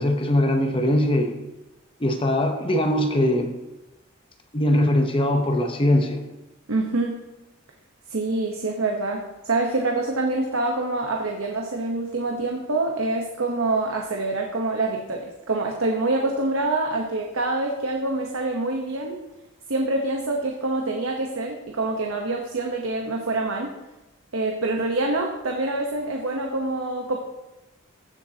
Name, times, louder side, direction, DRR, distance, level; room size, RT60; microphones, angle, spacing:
voice 1, 0.0-1.4 2.0-3.5 4.5-6.2, left 1 dB, 25° left, 5 dB, 0.8 m, -21 dB
voice 2, 6.7-7.2 8.1-19.2 19.7-23.7 24.3-27.2, right 2 dB, 85° right, 1 dB, 1.0 m, -26 dB
15.5 x 7.2 x 2.9 m, 1.0 s
head